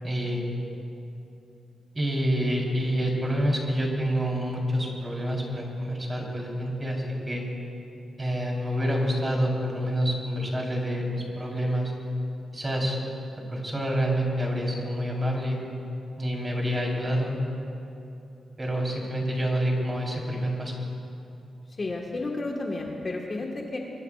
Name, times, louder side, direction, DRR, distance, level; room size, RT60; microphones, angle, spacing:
voice 1, 0.0-0.4 1.9-7.4 8.2-11.9 12.5-13.0 13.5-15.6 16.2-17.4 18.6-20.7, equal, 20° right, -2 dB, 3.8 m, -27 dB
voice 2, 21.8-23.8, left 2 dB, 35° left, -1 dB, 1.5 m, -32 dB
24.0 x 23.0 x 2.5 m, 2.7 s
wide cardioid pair, 130°, 0 cm